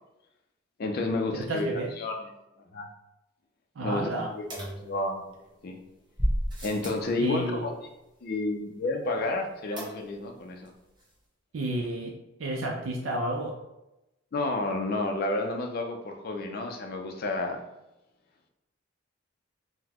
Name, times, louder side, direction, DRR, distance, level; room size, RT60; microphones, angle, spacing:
voice 1, 0.8-2.2 2.7-2.9 3.8-4.4 4.8-5.8 6.6-7.7 8.2-10.7 14.3-17.6, left 2 dB, 45° left, 3 dB, 0.4 m, -30 dB
voice 2, 1.3-1.9 3.8-4.3 7.2-7.7 11.5-12.1 12.4-13.6, right 1 dB, 70° right, 0 dB, 0.4 m, -31 dB
sound 1, 4.5-5.5 6.2-7.1 9.8-10.3 10.6-10.7 11.0-11.1, equal, 20° right, 0.9 m, -32 dB
3.8 x 2.1 x 2.9 m, 0.92 s
head